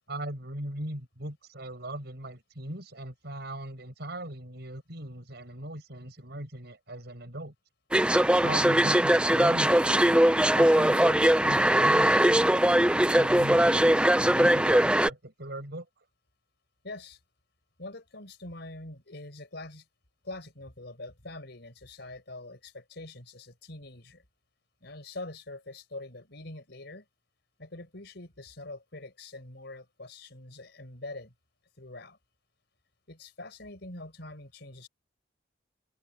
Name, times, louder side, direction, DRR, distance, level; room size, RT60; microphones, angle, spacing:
voice 1, 0.1-7.5 8.3-10.1 10.5-12.5 13.2-16.0, right 1 dB, 60° right, 6.7 m, -39 dB
sound 1, 7.9-15.1, right 1 dB, 5° right, 0.5 m, -21 dB
voice 2, 16.8-17.2 17.8-19.8 20.2-24.2 24.8-27.1 27.6-31.3 31.8-32.2 33.1-34.9, left 2 dB, 60° left, 5.3 m, -44 dB
open air
head